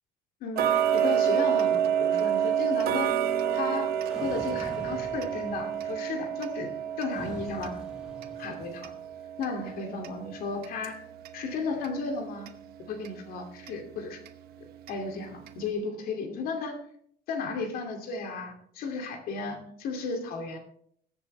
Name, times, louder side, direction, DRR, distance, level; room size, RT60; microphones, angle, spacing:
voice 1, 0.4-3.2 3.5-6.7 7.0-7.8 8.4-8.9 9.4-11.0 11.3-12.5 12.9-14.2 14.9-16.8 17.3-20.6, left 4 dB, 65° left, 4 dB, 2.5 m, -34 dB
Tick-tock, 0.6-11.4 11.8-11.9 12.5-12.6 13.0-13.1 13.7-13.8 14.3-14.4 14.9-15.0 15.5-15.6, right 9 dB, 70° right, 1.0 m, -28 dB
sound 1, 4.1-6.0 7.1-8.9, right 1 dB, 5° right, 1.3 m, -45 dB
20.5 x 8.1 x 3.3 m, 0.64 s
cardioid pair, 180°, 16 cm